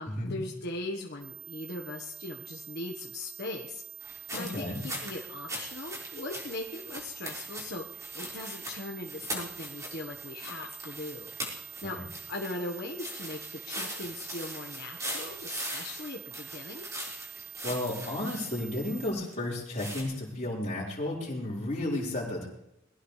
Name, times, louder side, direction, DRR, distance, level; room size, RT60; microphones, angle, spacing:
voice 1, 0.0-16.9, left 2 dB, 55° left, 0 dB, 1.4 m, -40 dB
sound 1, 1.2-19.1, right 10 dB, 65° right, 5.9 m, -46 dB
sound 2, 4.0-19.3 19.7-20.0, equal, 15° right, 5.0 m, -41 dB
voice 2, 4.3-4.8 11.8-12.0 17.6-22.5, left 1 dB, 35° left, -6 dB, 4.8 m, -33 dB
21.5 x 16.5 x 3.4 m, 0.82 s
head